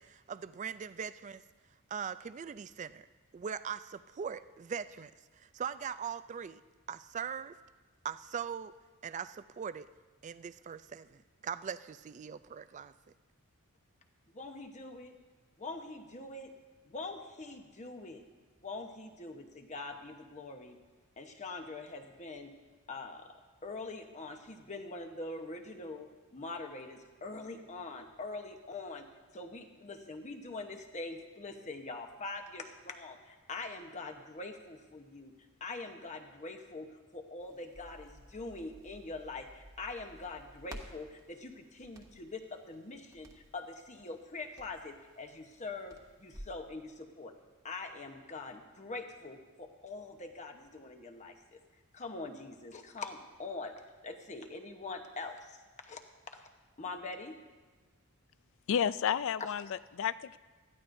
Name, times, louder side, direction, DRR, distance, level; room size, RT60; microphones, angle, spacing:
voice 1, 0.0-1.4 1.9-3.1 3.3-5.1 5.4-6.6 6.9-7.6 8.0-8.7 9.0-9.9 10.2-12.9, right 7 dB, 35° right, 14 dB, 0.3 m, -40 dB
voice 2, 14.3-15.1 15.6-16.5 16.9-18.3 18.6-20.8 21.2-22.5 22.9-23.3 23.6-29.1 29.3-35.3 35.6-47.3 47.6-51.6 51.9-53.7 54.0-55.6 55.8-56.0 56.3-56.5 56.8-57.4 59.4-59.5, left 3 dB, 30° left, 4 dB, 1.0 m, -43 dB
Crackle, 37.4-46.6, right 1 dB, 15° right, 1.0 m, -54 dB
voice 3, 58.7-60.4, left 8 dB, 60° left, 17 dB, 0.3 m, -31 dB
19.5 x 13.5 x 2.6 m, 1.3 s
head